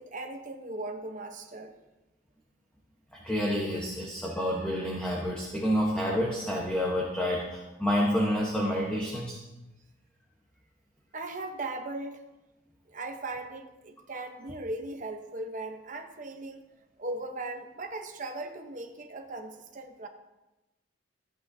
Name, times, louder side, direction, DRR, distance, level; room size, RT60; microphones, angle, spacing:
voice 1, 0.0-1.8 11.1-12.2 12.9-16.6 17.0-20.1, right 2 dB, 40° right, 4 dB, 0.9 m, -38 dB
voice 2, 3.2-9.4, equal, 5° left, -4 dB, 1.1 m, -28 dB
14.5 x 8.4 x 2.8 m, 1.0 s
head